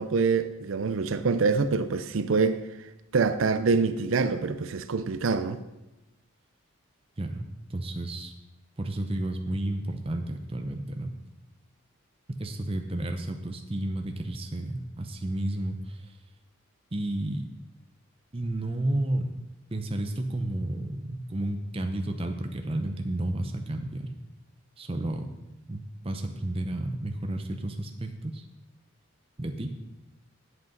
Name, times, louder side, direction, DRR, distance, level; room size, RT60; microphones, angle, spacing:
voice 1, 0.0-2.6 3.1-5.6, right 4 dB, 75° right, 0.5 m, -25 dB
voice 2, 7.7-8.3 8.8-11.2 12.4-16.2 16.9-17.5 18.3-19.3 19.7-24.1 24.8-25.3 25.6-28.4 29.4-29.7, right 1 dB, 25° right, 0.7 m, -32 dB
8.3 x 8.0 x 5.3 m
head